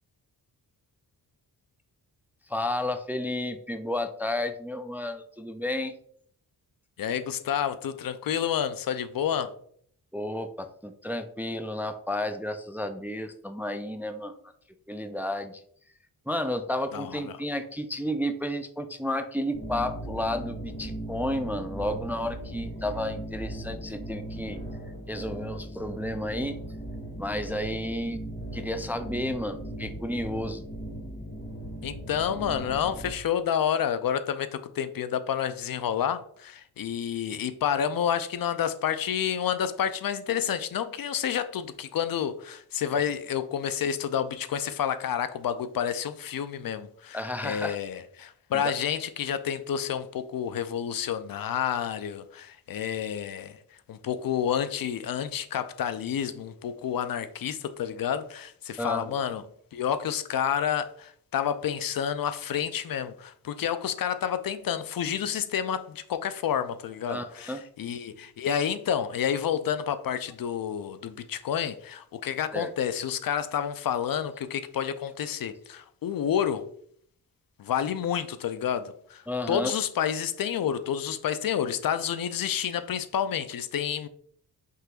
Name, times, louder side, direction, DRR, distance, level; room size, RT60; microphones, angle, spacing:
voice 1, 2.5-5.9 10.1-14.3 14.9-15.6 16.3-24.6 25.1-26.6 27.2-28.2 28.5-30.6 47.1-47.8 48.5-48.7 58.8-59.2 67.1-67.6 72.5-72.7 79.3-79.7, left 1 dB, 5° right, 0.4 m, -32 dB
voice 2, 7.0-9.5 16.9-17.2 31.8-53.6 53.9-59.4 59.7-76.7 77.6-84.1, left 9 dB, 55° left, 0.5 m, -29 dB
sound 1, 19.5-33.1, right 1 dB, 25° left, 1.6 m, -38 dB
5.4 x 3.8 x 2.4 m
cardioid pair, 55°, 41 cm